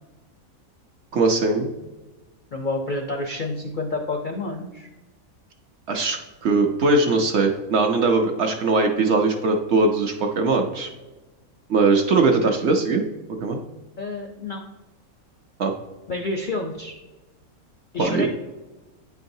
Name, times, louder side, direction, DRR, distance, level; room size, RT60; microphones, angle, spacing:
voice 1, 1.1-1.7 5.9-10.9 11.7-13.0 13.4-13.6 15.6-15.7 18.0-18.3, right 3 dB, 60° right, 3 dB, 0.8 m, -20 dB
voice 2, 2.5-4.9 14.0-14.7 16.1-17.0 17.9-18.3, left 2 dB, 60° left, 2 dB, 0.5 m, -29 dB
8.8 x 4.6 x 2.6 m, 1.1 s
omnidirectional pair, 1.5 m